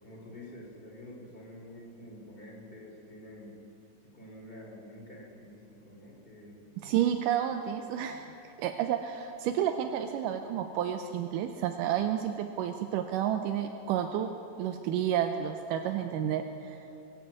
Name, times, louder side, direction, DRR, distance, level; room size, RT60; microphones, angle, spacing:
voice 1, 0.0-3.5 4.0-6.6, left 1 dB, 15° left, -3 dB, 2.8 m, -48 dB
voice 2, 6.8-14.3 14.6-16.8, right 10 dB, 85° right, 6 dB, 2.2 m, -31 dB
22.5 x 7.7 x 8.1 m, 2.8 s
omnidirectional pair, 3.8 m